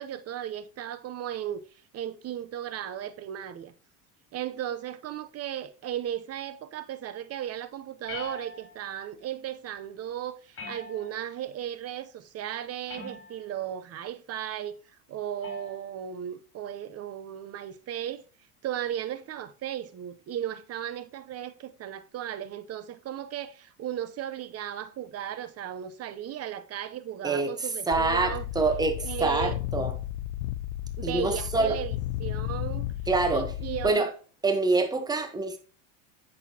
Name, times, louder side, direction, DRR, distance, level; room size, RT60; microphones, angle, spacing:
voice 1, 0.0-1.6 1.9-3.7 4.3-14.8 15.1-18.2 18.6-28.5 29.0-29.8 31.0-32.9 33.3-34.1, right 10 dB, 35° right, 0.8 m, -36 dB
sound 1, 8.1-8.9 10.5-11.4 12.9-13.6 15.4-15.8, left 3 dB, 30° left, 3.6 m, -42 dB
sound 2, 27.9-33.9, left 13 dB, 75° left, 0.6 m, -33 dB
voice 2, 27.9-29.9 31.0-31.8 33.1-33.5 33.8-34.1 34.4-35.6, right 3 dB, 10° right, 1.0 m, -26 dB
8.2 x 6.4 x 2.8 m
supercardioid pair, 110°, 43 cm